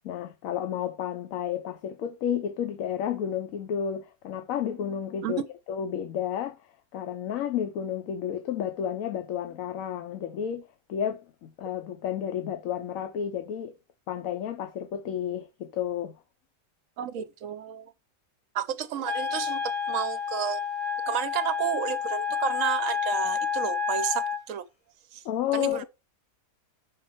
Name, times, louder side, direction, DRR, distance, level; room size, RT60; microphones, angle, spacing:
voice 1, 0.0-5.4 5.7-6.5 6.9-10.6 10.9-13.7 14.1-16.2 25.2-25.8, left 9 dB, 70° left, 1.1 m, -31 dB
voice 2, 17.0-17.9 18.5-20.6 21.1-24.6 25.1-25.2 25.5-25.8, right 10 dB, 70° right, 1.0 m, -31 dB
Wind instrument woodwind instrument, 19.0-24.4, left 7 dB, 40° left, 0.4 m, -29 dB
5.2 x 4.4 x 5.4 m
omnidirectional pair, 1.5 m